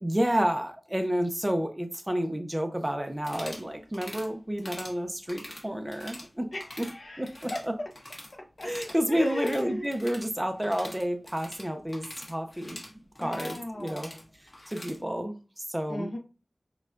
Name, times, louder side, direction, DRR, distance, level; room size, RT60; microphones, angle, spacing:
voice 1, 0.0-6.5 6.8-6.9 7.2-7.7 8.6-12.8 13.2-14.1 14.7-16.1, equal, 15° right, 6 dB, 0.5 m, -30 dB
sound 1, 3.2-3.7 3.9-4.3 4.6-5.0 5.3-6.3 6.5-6.9 7.2-8.3 8.6-15.0, left 1 dB, 45° left, 1.4 m, -44 dB
voice 2, 6.5-7.9 8.3-9.9 13.2-14.3 15.9-16.2, left 1 dB, 65° left, 0 dB, 0.9 m, -37 dB
6.4 x 2.3 x 2.4 m, 0.34 s
wide cardioid pair, 70°, 0 cm